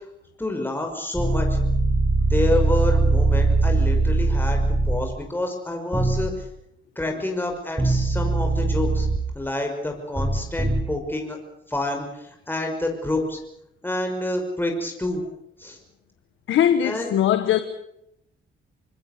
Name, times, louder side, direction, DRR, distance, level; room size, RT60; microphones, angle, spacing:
voice 1, 0.4-1.5 2.3-4.6 4.9-6.3 7.0-9.1 9.3-11.4 11.7-13.4 13.8-15.2 15.6-15.8 16.8-17.1, left 1 dB, 10° left, 5.9 m, -28 dB
sound 1, 1.1-5.0 5.9-6.3 7.8-9.2 10.2-10.8, right 2 dB, 10° right, 6.9 m, -21 dB
voice 2, 16.5-17.7, left 10 dB, 80° left, 1.5 m, -20 dB
26.5 x 20.5 x 6.8 m
cardioid pair, 90°, 20 cm